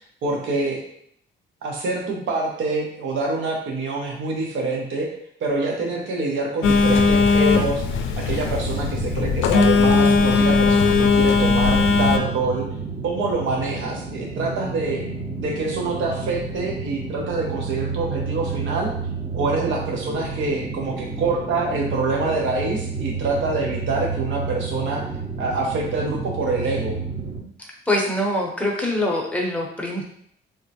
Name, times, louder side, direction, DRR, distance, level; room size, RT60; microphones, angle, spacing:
voice 1, 0.2-0.8 1.6-5.1 5.4-12.6 13.0-15.1 15.4-18.9 19.3-25.0 25.4-27.0, right 3 dB, 75° right, 0 dB, 0.8 m, -26 dB
Telephone, 6.6-12.2, left 4 dB, 75° left, 0.4 m, -18 dB
sound 1, 8.6-27.4, right 4 dB, 40° right, 0.8 m, -31 dB
voice 2, 27.9-30.0, left 1 dB, 5° left, -1 dB, 0.7 m, -24 dB
3.6 x 2.1 x 2.8 m, 0.67 s
cardioid pair, 90°, 20 cm